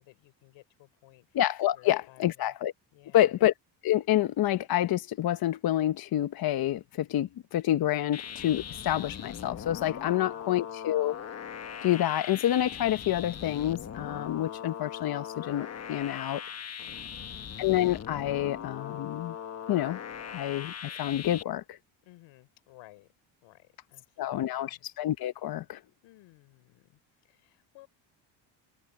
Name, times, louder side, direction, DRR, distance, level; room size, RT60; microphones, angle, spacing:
voice 1, 0.0-1.4 1.7-2.5 2.9-3.4 10.0-10.7 16.8-17.4 22.0-23.1 23.4-24.8 26.0-27.9, left 18 dB, 85° left, 5.6 m, -58 dB
voice 2, 1.3-2.7 3.1-3.5 3.8-11.2 11.8-16.4 17.6-19.3 19.7-20.0 20.3-21.8 24.2-25.8, left 13 dB, 50° left, 0.9 m, -28 dB
sound 1, 8.1-21.4, left 8 dB, 35° left, 1.3 m, -40 dB
cardioid pair, 100°, 45 cm